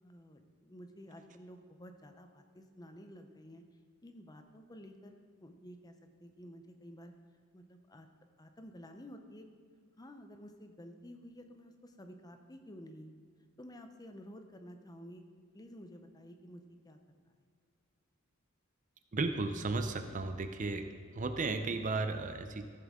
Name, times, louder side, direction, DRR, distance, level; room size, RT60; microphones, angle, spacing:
voice 1, 0.0-3.6 4.0-5.1 5.4-5.9 6.2-7.1 7.5-8.1 8.4-9.4 10.0-13.2 13.6-15.2 15.5-17.0, equal, 20° left, 6 dB, 0.6 m, -52 dB
voice 2, 19.1-20.8 21.1-22.7, right 3 dB, 35° right, 8 dB, 0.5 m, -34 dB
14.5 x 7.0 x 3.7 m, 2.1 s
head